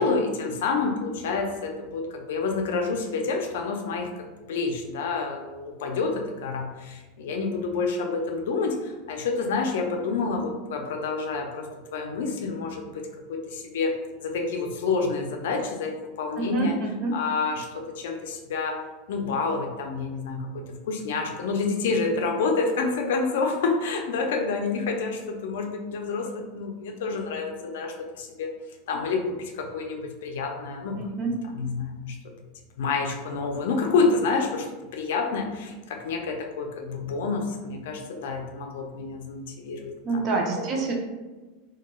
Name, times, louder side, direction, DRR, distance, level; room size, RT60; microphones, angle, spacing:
voice 1, 0.0-16.7 17.1-18.8 19.1-28.5 28.9-31.0 31.5-32.2 32.8-34.7 34.9-40.2 40.6-40.7, left 4 dB, 75° left, 3 dB, 0.4 m, -28 dB
voice 2, 16.4-17.1 31.0-31.3 40.0-40.9, right 3 dB, 30° right, 1 dB, 0.4 m, -27 dB
2.2 x 2.2 x 3.0 m, 1.2 s
supercardioid pair, 165°, 0 cm